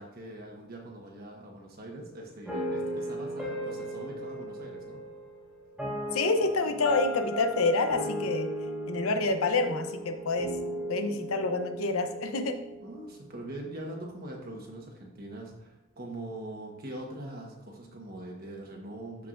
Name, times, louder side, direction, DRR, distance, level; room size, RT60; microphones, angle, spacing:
voice 1, 0.0-5.0 12.8-19.3, right 1 dB, 45° right, 0 dB, 1.2 m, -42 dB
sound 1, 2.4-13.6, right 1 dB, ahead, 1.9 m, -36 dB
voice 2, 6.1-8.5 8.9-10.5 10.9-12.6, left 3 dB, 85° left, 7 dB, 0.8 m, -28 dB
13.0 x 4.7 x 2.5 m, 0.88 s
head